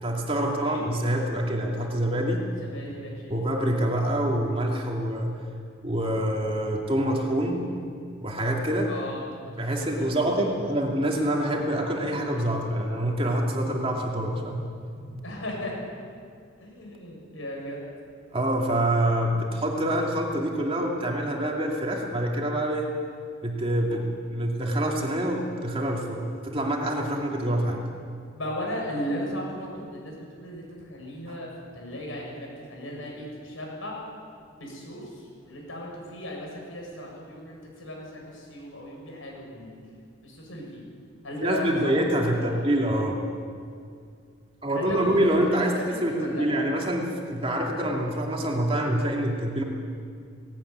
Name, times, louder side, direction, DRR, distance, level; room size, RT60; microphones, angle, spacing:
voice 1, 0.0-2.4 3.3-5.4 5.8-7.6 8.2-8.9 9.6-15.2 18.3-22.9 23.4-27.8 31.3-31.4 41.4-43.2 44.6-49.6, right 1 dB, 25° right, 0 dB, 2.5 m, -26 dB
voice 2, 2.6-3.3 8.9-10.3 15.2-15.7 16.6-17.8 28.3-31.5 31.7-34.0 34.6-35.0 35.5-39.8 40.2-40.8 41.2-41.7 42.1-42.7 44.7-46.5, equal, 75° left, -1 dB, 7.2 m, -36 dB
18.5 x 18.0 x 9.4 m, 2.2 s
head